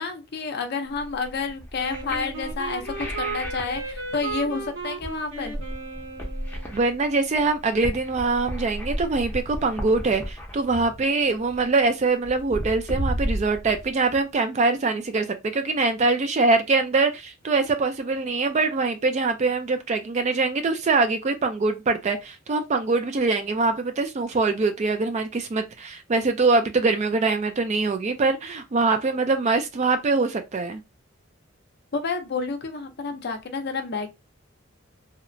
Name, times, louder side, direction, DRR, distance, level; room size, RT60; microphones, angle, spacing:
voice 1, 0.0-5.5 31.9-34.1, left 4 dB, 55° left, 0.5 m, -30 dB
sound 1, 0.9-14.3, equal, 10° left, 0.6 m, -34 dB
Wind instrument woodwind instrument, 1.8-6.8, right 3 dB, 70° right, 1.0 m, -35 dB
voice 2, 6.7-30.8, right 3 dB, 35° right, 0.4 m, -23 dB
2.8 x 2.1 x 2.5 m
head